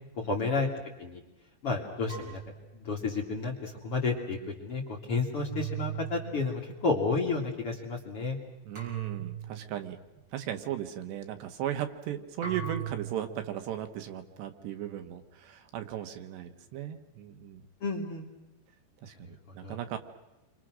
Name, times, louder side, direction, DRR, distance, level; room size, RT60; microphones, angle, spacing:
voice 1, 0.2-0.7 1.0-1.2 1.6-2.4 2.8-8.4 17.8-18.3 19.2-19.8, left 3 dB, 40° left, 0 dB, 2.7 m, -31 dB
sound 1, 2.1-3.5 5.4-6.5 8.8-9.7 12.4-13.4, right 9 dB, 30° right, 7.0 m, -39 dB
voice 2, 8.7-10.0 10.3-17.7 19.0-20.0, right 11 dB, 75° right, 7 dB, 3.4 m, -37 dB
30.0 x 24.5 x 6.3 m, 0.97 s
omnidirectional pair, 5.2 m